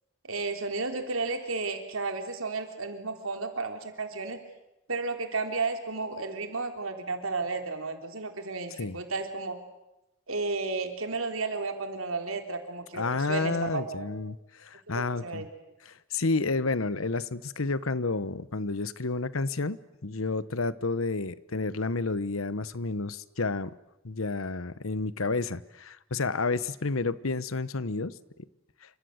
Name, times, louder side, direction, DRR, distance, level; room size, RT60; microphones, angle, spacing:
voice 1, 0.2-4.4 4.9-9.6 10.3-14.0 14.9-15.5, right 3 dB, 85° right, 5 dB, 3.8 m, -33 dB
voice 2, 12.9-15.4 15.8-19.8 20.0-23.7 24.0-28.1, left 3 dB, 85° left, 16 dB, 1.1 m, -30 dB
29.0 x 26.0 x 8.0 m, 0.91 s
head